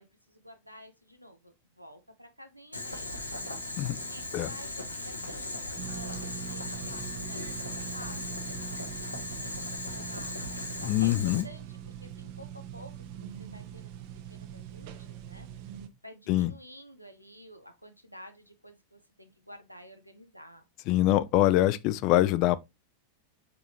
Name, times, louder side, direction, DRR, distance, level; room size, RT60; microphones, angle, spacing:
voice 1, 0.0-3.1 4.1-13.9 14.3-15.5 16.0-20.6, equal, 90° right, 0.7 m, -51 dB
Boiling, 2.7-11.4, left 2 dB, 85° left, 0.9 m, -38 dB
sound 1, 5.8-15.9, right 9 dB, 50° right, 0.6 m, -42 dB
voice 2, 10.8-11.5 16.3-16.5 20.9-22.6, left 15 dB, 40° left, 0.3 m, -24 dB
5.0 x 3.7 x 2.8 m
figure-of-eight pair, 90°, 0 cm